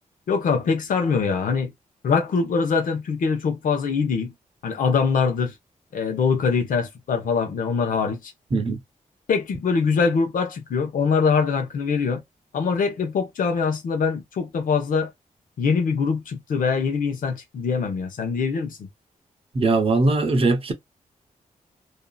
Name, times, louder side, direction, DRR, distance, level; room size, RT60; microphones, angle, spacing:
voice 1, 0.3-1.7 2.0-4.3 4.6-5.5 5.9-8.3 9.3-12.2 12.5-15.1 15.6-18.8, left 5 dB, 90° left, 0.9 m, -23 dB
voice 2, 8.5-8.8 19.5-20.7, right 3 dB, 45° right, 0.8 m, -20 dB
2.7 x 2.5 x 2.3 m
wide cardioid pair, 120°, 14 cm